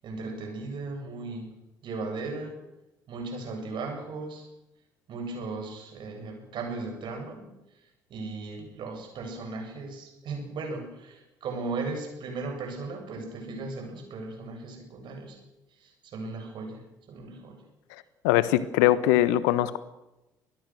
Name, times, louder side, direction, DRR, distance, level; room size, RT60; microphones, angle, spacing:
voice 1, 0.0-1.5 1.8-2.6 3.1-4.5 5.1-7.5 7.7-15.4 15.7-17.6, right 3 dB, 50° right, 3 dB, 7.9 m, -37 dB
voice 2, 18.2-19.8, left 14 dB, 70° left, 16 dB, 1.2 m, -22 dB
25.0 x 20.5 x 6.4 m, 0.95 s
figure-of-eight pair, 55°, 10 cm